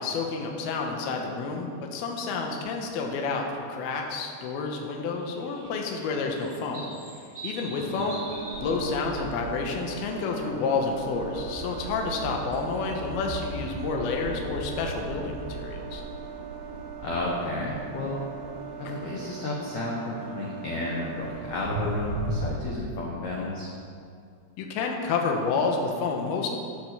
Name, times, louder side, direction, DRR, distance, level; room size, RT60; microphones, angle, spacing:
voice 1, 0.0-6.9 7.4-16.0 24.6-26.5, left 4 dB, 70° left, 2 dB, 2.8 m, -29 dB
sound 1, 5.0-10.1 10.4-10.8 12.0-13.3, right 2 dB, 30° right, 0.8 m, -45 dB
sound 2, 8.0-22.6, right 3 dB, 65° right, 3.6 m, -37 dB
voice 2, 17.0-18.2 18.8-23.7, left 2 dB, 90° left, -3 dB, 1.5 m, -32 dB
9.8 x 9.1 x 6.8 m, 2.3 s
omnidirectional pair, 5.2 m